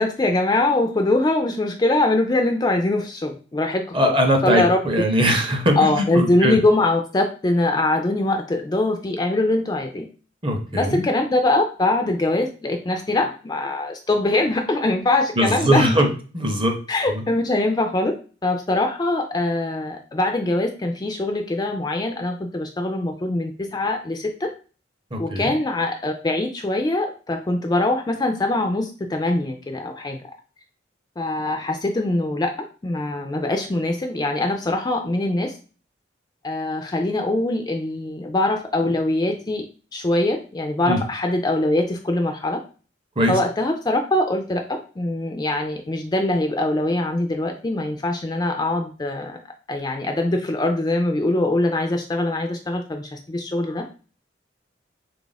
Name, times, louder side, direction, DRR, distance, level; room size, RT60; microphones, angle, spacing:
voice 1, 0.0-4.1 4.4-4.8 5.8-10.1 10.7-15.9 16.9-18.1 18.4-24.5 25.2-30.2 31.2-32.5 32.8-35.5 36.4-39.7 39.9-42.6 43.3-49.4 49.7-53.9, left 2 dB, 20° left, 4 dB, 0.3 m, -22 dB
voice 2, 3.9-6.6 10.4-11.0 15.4-16.1 16.3-16.8 17.1-17.2 25.1-25.5 40.8-41.0 43.2-43.4, equal, 25° right, 4 dB, 0.6 m, -20 dB
3.4 x 2.4 x 3.9 m, 0.37 s
head